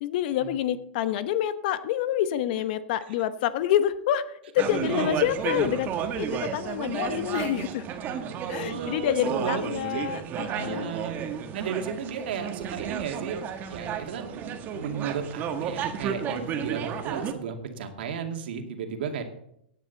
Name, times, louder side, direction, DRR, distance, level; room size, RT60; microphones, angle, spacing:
voice 1, 0.0-5.9 6.2-7.9 8.5-10.9, left 11 dB, 55° left, 13 dB, 1.1 m, -27 dB
sound 1, 4.6-17.3, right 8 dB, 35° right, 1.6 m, -32 dB
voice 2, 4.8-5.2 8.6-10.1 10.5-11.2 11.5-13.4 13.7-19.2, right 6 dB, 70° right, 4 dB, 2.3 m, -34 dB
17.5 x 9.3 x 4.1 m, 0.77 s
hypercardioid pair, 125°, 6 cm